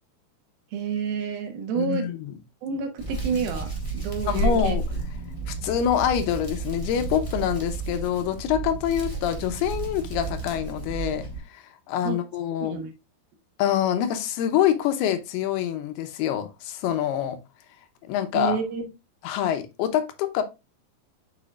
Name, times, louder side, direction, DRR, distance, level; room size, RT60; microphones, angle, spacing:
voice 1, 0.7-2.1 2.6-4.8 12.0-12.2 12.6-12.9 18.3-18.8, right 6 dB, 75° right, 3.1 m, -29 dB
voice 2, 1.8-2.2 4.3-4.8 5.5-11.2 11.5-12.8 13.6-17.4 18.1-18.6 19.2-20.4, left 10 dB, 90° left, 2.8 m, -25 dB
Hands, 3.0-11.4, right 3 dB, 35° left, 0.5 m, -31 dB
7.2 x 6.7 x 2.4 m
omnidirectional pair, 4.5 m